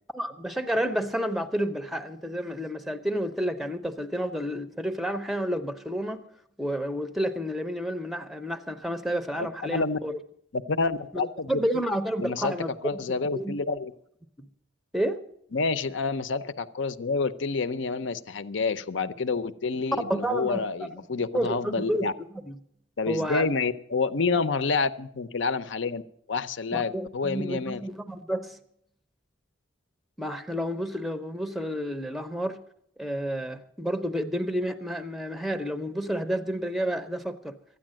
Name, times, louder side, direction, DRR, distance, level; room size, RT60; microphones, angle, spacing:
voice 1, 0.1-6.3 6.6-10.2 11.1-12.7 13.3-13.5 14.9-15.2 20.1-20.6 21.3-22.1 22.5-22.6 23.1-23.5 24.3-24.4 26.9-28.6 30.2-32.6 33.0-37.5, equal, ahead, 0.6 m, -30 dB
voice 2, 9.4-10.0 10.5-11.6 12.2-12.6 12.8-13.9 15.5-22.1 23.0-26.0 26.3-27.8, left 4 dB, 70° left, 0.6 m, -28 dB
13.0 x 9.8 x 7.5 m
head